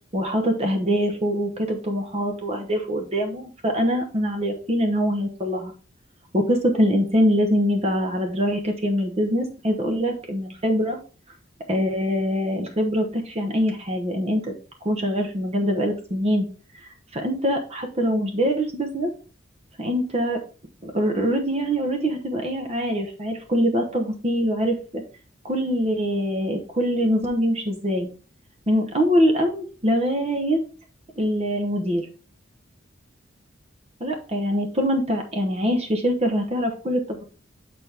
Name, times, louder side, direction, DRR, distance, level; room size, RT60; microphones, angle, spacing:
voice 1, 0.1-5.7 6.3-11.0 11.7-14.5 14.8-16.5 16.7-19.1 19.8-20.4 20.8-25.0 25.4-28.1 28.7-30.6 31.2-32.0 34.0-37.2, equal, 35° right, 4 dB, 1.0 m, -23 dB
8.7 x 4.4 x 3.4 m, 0.37 s
head